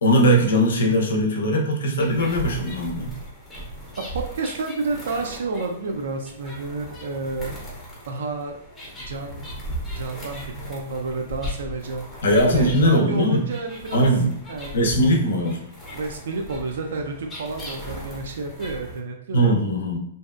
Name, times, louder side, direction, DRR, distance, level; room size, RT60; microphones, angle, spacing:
voice 1, 0.0-3.1 12.2-13.4 13.9-14.3 14.7-15.6 19.3-20.0, equal, 80° left, 0 dB, 0.6 m, -20 dB
sound 1, 2.0-19.0, equal, 10° left, 0.5 m, -38 dB
voice 2, 4.0-7.6 8.1-8.6 9.1-9.4 9.9-12.1 12.5-14.1 14.5-14.8 15.9-19.5, right 3 dB, 75° right, 3 dB, 0.3 m, -30 dB
2.6 x 2.1 x 2.3 m, 0.74 s
hypercardioid pair, 160°, 0 cm